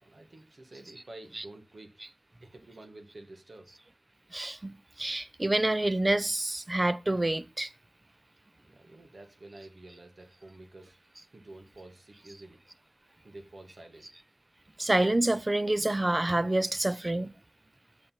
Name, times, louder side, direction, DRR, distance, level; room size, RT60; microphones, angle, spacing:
voice 1, 0.0-2.0 2.4-3.7 8.7-11.0 11.3-12.6 13.2-14.1, right 2 dB, 65° right, 1.7 m, -49 dB
voice 2, 4.3-7.7 14.8-17.3, right 1 dB, 30° right, 0.5 m, -27 dB
8.7 x 6.6 x 5.8 m
wide cardioid pair, 80°, 0 cm